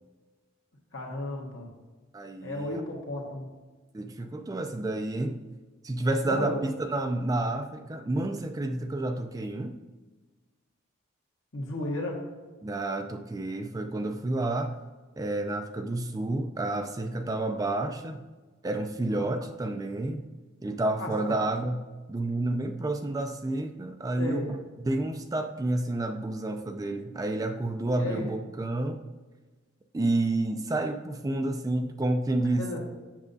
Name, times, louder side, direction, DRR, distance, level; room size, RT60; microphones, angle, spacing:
voice 1, 0.9-1.7 2.4-3.5 6.2-6.6 11.5-12.3 19.1-19.3 21.0-21.1 24.2-24.5 27.9-28.3 32.6-32.8, left 1 dB, 80° left, -2 dB, 1.5 m, -33 dB
voice 2, 2.1-2.8 3.9-5.4 5.8-9.8 12.6-14.7 15.2-18.2 18.6-20.3 20.6-21.8 22.1-24.6 24.8-29.0 29.9-32.7, right 2 dB, 20° right, 6 dB, 0.3 m, -30 dB
7.3 x 6.5 x 2.6 m, 1.3 s
head